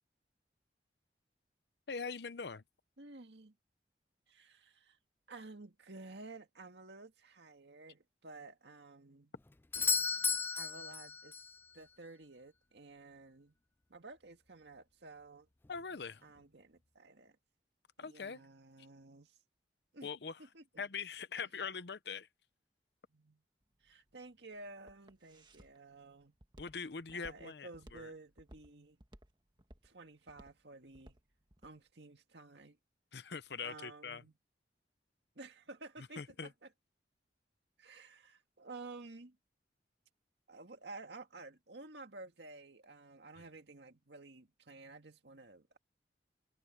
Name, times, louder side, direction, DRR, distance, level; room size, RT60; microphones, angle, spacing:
voice 1, 1.9-2.6 15.7-16.2 18.0-18.4 20.0-20.4 20.8-22.3 26.6-28.1 33.1-34.2 36.2-36.5, left 5 dB, 75° left, 0.7 m, -42 dB
voice 2, 3.0-3.6 4.3-5.0 5.3-9.3 10.5-11.4 11.7-13.5 13.9-15.5 16.2-17.4 18.0-19.4 19.9-20.1 20.4-20.9 21.4-21.5 23.1-23.4 23.8-26.3 27.1-29.0 29.8-31.2 31.6-32.8 33.6-34.3 35.4-36.7 37.8-39.4 40.5-45.8, right 3 dB, 80° right, 2.0 m, -53 dB
Doorbell, 9.7-11.6 15.6-15.7, left 5 dB, 10° left, 0.3 m, -34 dB
Walk footsteps, 23.6-31.8, right 1 dB, 25° right, 1.6 m, -59 dB
head